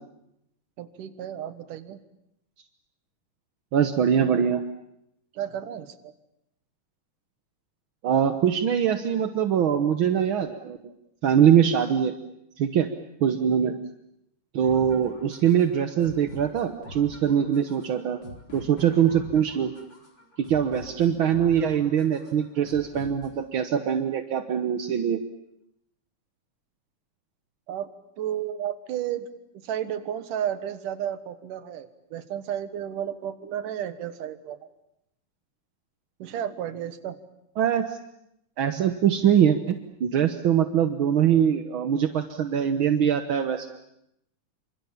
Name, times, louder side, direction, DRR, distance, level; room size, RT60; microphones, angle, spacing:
voice 1, 0.8-2.0 5.3-6.1 13.6-13.7 27.7-27.9 28.2-29.3 29.6-34.6 36.2-37.2, right 10 dB, 80° right, 12 dB, 3.0 m, -32 dB
voice 2, 3.7-4.6 8.0-10.9 11.2-12.1 12.6-12.9 13.2-13.8 14.5-18.2 18.5-19.7 20.4-25.2 37.6-38.0 38.6-39.7 40.0-43.7, right 8 dB, 60° right, 8 dB, 1.4 m, -23 dB
sound 1, 14.6-23.6, left 1 dB, 35° left, 4.8 m, -45 dB
28.0 x 25.5 x 7.3 m, 0.79 s
omnidirectional pair, 3.7 m